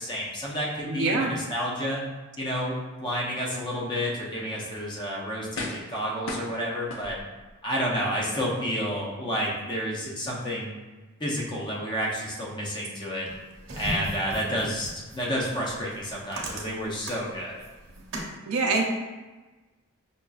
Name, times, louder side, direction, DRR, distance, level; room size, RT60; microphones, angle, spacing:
voice 1, 0.0-2.0 2.4-7.2 7.6-10.8 11.2-13.3 13.7-17.5, equal, 20° left, -4 dB, 0.6 m, -30 dB
voice 2, 0.9-1.3 18.5-18.8, right 3 dB, 85° right, 1 dB, 0.6 m, -24 dB
sound 1, 5.5-6.0 6.3-7.5 8.0-8.1, left 2 dB, 65° left, 0.5 m, -36 dB
sound 2, 13.3-18.3, right 1 dB, 60° right, 0.8 m, -38 dB
5.3 x 2.4 x 2.3 m, 1.2 s
head